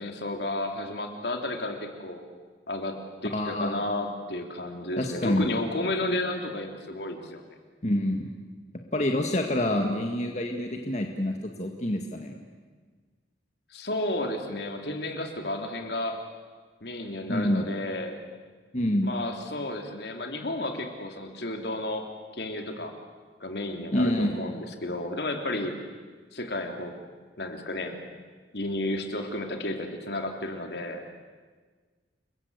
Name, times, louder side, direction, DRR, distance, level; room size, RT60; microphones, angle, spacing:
voice 1, 0.0-2.2 2.7-7.4 13.7-16.2 16.8-18.2 19.0-22.0 22.3-22.9 23.4-25.8 26.3-26.9 27.4-28.0 28.5-31.0, left 1 dB, 65° left, 4 dB, 3.2 m, -32 dB
voice 2, 3.3-3.8 5.0-5.5 7.8-8.3 8.9-12.4 17.3-17.7 18.7-19.1 23.9-24.6, left 1 dB, 40° left, 3 dB, 1.8 m, -27 dB
30.0 x 22.5 x 8.2 m, 1.5 s
head